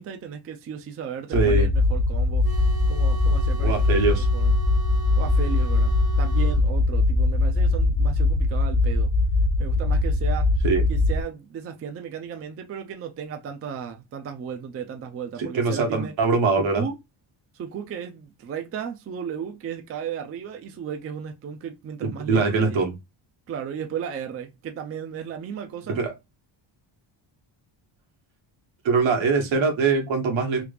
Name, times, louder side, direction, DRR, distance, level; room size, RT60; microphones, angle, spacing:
voice 1, 0.0-2.5 2.9-4.5 5.2-9.1 9.6-10.5 10.9-16.1 16.6-17.0 17.5-22.8 23.5-26.0, right 7 dB, 35° right, 0.4 m, -35 dB
sound 1, 1.3-11.2, left 2 dB, 35° left, 0.4 m, -21 dB
voice 2, 1.3-1.7 3.6-4.3 10.6-10.8 15.4-16.8 22.0-22.9 26.0-26.1 28.8-30.6, right 4 dB, 75° right, 1.3 m, -22 dB
sound 2, 2.4-6.6, right 5 dB, 55° right, 0.8 m, -39 dB
3.3 x 2.3 x 3.3 m
cardioid pair, 160°, 47 cm